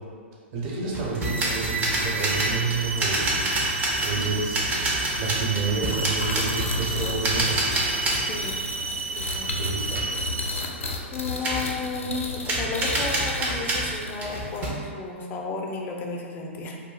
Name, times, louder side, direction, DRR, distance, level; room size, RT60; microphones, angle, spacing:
voice 1, 0.5-3.4 4.0-4.7 5.2-7.6 9.6-10.0, right 4 dB, 40° right, -5 dB, 0.9 m, -29 dB
sound 1, 0.9-8.3 8.7-9.7 9.9-10.1 11.4-11.7 12.4-14.8, right 1 dB, 20° right, 0.5 m, -28 dB
sound 2, 1.2-10.8, right 4 dB, 90° right, 0.3 m, -32 dB
voice 2, 4.1-4.6 8.1-8.6 9.0-9.5 10.1-10.2 11.1-16.8, left 4 dB, 25° left, 0 dB, 0.4 m, -33 dB
sound 3, 5.8-14.3, left 3 dB, 85° left, 0.4 m, -33 dB
2.3 x 2.1 x 3.8 m, 2.1 s
hypercardioid pair, 115°, 7 cm